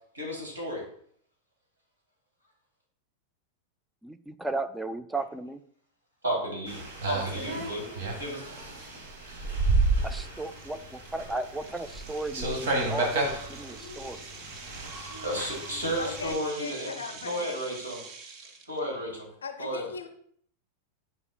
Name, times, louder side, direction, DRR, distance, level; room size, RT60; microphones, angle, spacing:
voice 1, 0.1-0.8 6.2-7.9 8.2-8.4 15.0-16.9 17.2-18.0 18.7-19.3 19.6-19.8, equal, 75° right, -1 dB, 2.1 m, -33 dB
voice 2, 4.0-5.6 10.0-14.2, right 2 dB, 5° right, 11 dB, 0.3 m, -35 dB
sound 1, 6.7-16.3, right 2 dB, 55° right, 1.4 m, -32 dB
sound 2, 8.6-8.7 9.2-9.4 9.8-9.9 10.5-18.8, right 4 dB, 40° right, 0.7 m, -46 dB
voice 3, 16.0-17.5 17.9-18.0 18.7-18.9 19.4-20.1, left 5 dB, 70° left, 8 dB, 0.5 m, -39 dB
9.6 x 4.6 x 2.2 m, 0.63 s
figure-of-eight pair, 90°, 0 cm